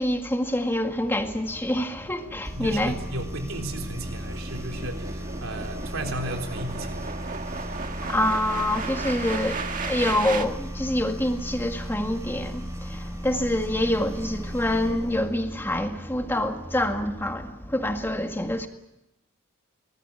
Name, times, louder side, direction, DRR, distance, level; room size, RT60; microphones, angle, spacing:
voice 1, 0.0-3.0 8.1-9.6 9.8-18.7, left 1 dB, 10° left, 1.8 m, -26 dB
sound 1, 0.9-10.5, right 4 dB, 40° right, 1.7 m, -36 dB
sound 2, 2.4-15.4, equal, 15° right, 3.9 m, -36 dB
voice 2, 2.6-7.0, right 1 dB, 70° right, 3.9 m, -34 dB
25.0 x 19.5 x 8.5 m
head